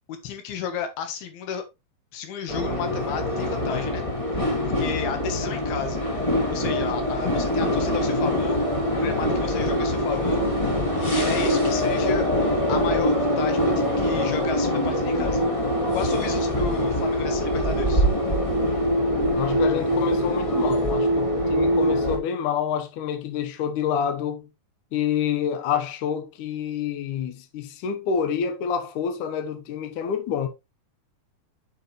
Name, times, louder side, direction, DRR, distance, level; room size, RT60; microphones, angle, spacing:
voice 1, 0.1-1.6 2.1-4.0 4.6-6.0 6.5-8.6 8.9-10.4 10.7-12.3 12.7-15.4 15.9-18.1, left 7 dB, 80° left, 3.3 m, -33 dB
sound 1, 2.5-22.2, equal, 20° left, 0.8 m, -23 dB
voice 2, 19.3-24.5 24.9-30.5, left 7 dB, 65° left, 2.3 m, -28 dB
7.9 x 6.8 x 3.1 m
omnidirectional pair, 4.3 m